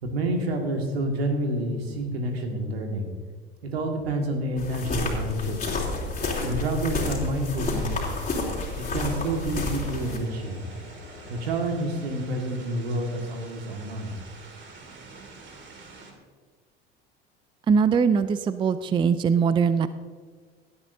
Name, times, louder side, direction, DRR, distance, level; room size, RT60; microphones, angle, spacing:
voice 1, 0.0-3.1 3.6-5.6 6.4-8.0 8.7-10.6 11.3-14.1, right 1 dB, 75° right, 3 dB, 2.0 m, -28 dB
sound 1, 4.6-10.2, left 2 dB, 25° left, 3.3 m, -30 dB
sound 2, 4.9-11.6, left 3 dB, 65° left, 2.0 m, -46 dB
sound 3, 7.7-16.1, right 4 dB, 35° right, 2.3 m, -47 dB
voice 2, 17.7-19.9, right 6 dB, 15° right, 14 dB, 0.4 m, -21 dB
18.0 x 11.5 x 2.7 m, 1.5 s
figure-of-eight pair, 70°, 31 cm